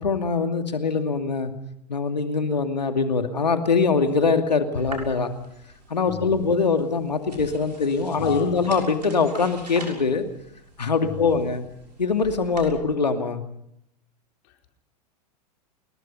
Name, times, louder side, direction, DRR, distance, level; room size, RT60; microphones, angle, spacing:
voice 1, 0.0-1.5 1.9-5.3 5.9-10.2 10.8-11.6 12.0-13.4, left 4 dB, 85° left, 7 dB, 2.5 m, -23 dB
sound 1, 4.8-12.7, right 2 dB, 90° right, 6.6 m, -43 dB
voice 2, 6.1-6.4 8.1-8.7 11.0-11.4 14.4-14.7, left 10 dB, 45° left, 3 dB, 4.7 m, -35 dB
29.0 x 21.5 x 5.5 m, 0.76 s
figure-of-eight pair, 95°, 21 cm